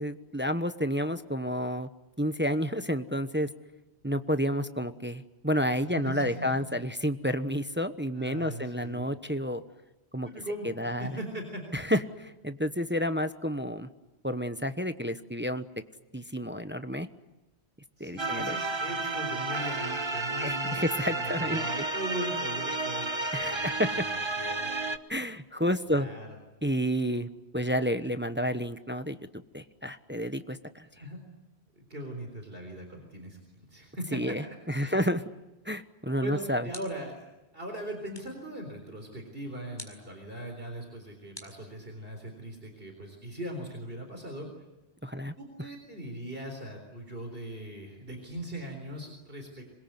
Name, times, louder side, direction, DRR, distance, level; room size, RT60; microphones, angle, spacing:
voice 1, 0.0-1.9 2.2-3.5 4.0-9.6 10.1-10.3 10.6-11.1 11.7-13.9 14.2-15.6 16.1-17.1 18.0-18.6 20.4-21.8 23.3-23.9 25.1-26.1 26.6-27.3 27.5-29.2 29.5-30.9 34.1-35.2 35.6-36.7 45.0-45.3, equal, 10° right, 10 dB, 1.0 m, -30 dB
voice 2, 5.9-6.5 8.1-9.1 10.2-11.8 18.0-24.7 25.9-26.3 30.9-31.2 31.8-34.3 34.7-35.1 36.2-37.2 37.5-44.5 45.4-49.6, right 1 dB, 60° right, 3 dB, 4.3 m, -40 dB
sound 1, 18.2-25.0, right 2 dB, 25° right, 1.2 m, -32 dB
sound 2, 36.7-37.2 38.1-38.5 39.8-40.1 41.3-42.2, left 1 dB, 25° left, 5.5 m, -48 dB
26.5 x 22.0 x 9.5 m, 1.0 s
omnidirectional pair, 1.1 m